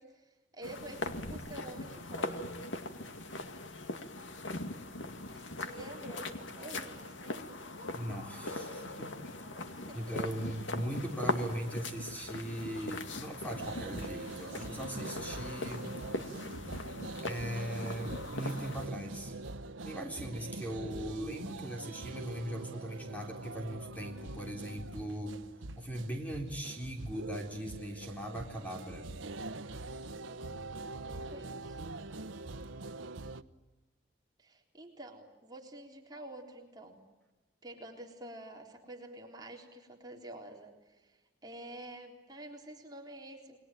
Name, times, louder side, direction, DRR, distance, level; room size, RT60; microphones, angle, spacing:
voice 1, 0.0-2.5 5.0-7.6 9.3-10.1 30.1-31.8 34.4-37.0 37.6-43.6, right 1 dB, 20° right, 1 dB, 3.8 m, -49 dB
sound 1, 0.6-18.9, left 2 dB, 80° left, 2.3 m, -40 dB
voice 2, 7.9-9.1 9.9-15.9 17.2-19.4 19.9-25.3 25.7-29.1, right 1 dB, 10° left, 2 dB, 3.7 m, -39 dB
sound 2, 13.5-33.4, right 2 dB, 85° right, 1.1 m, -44 dB
30.0 x 21.5 x 9.1 m, 1.1 s
head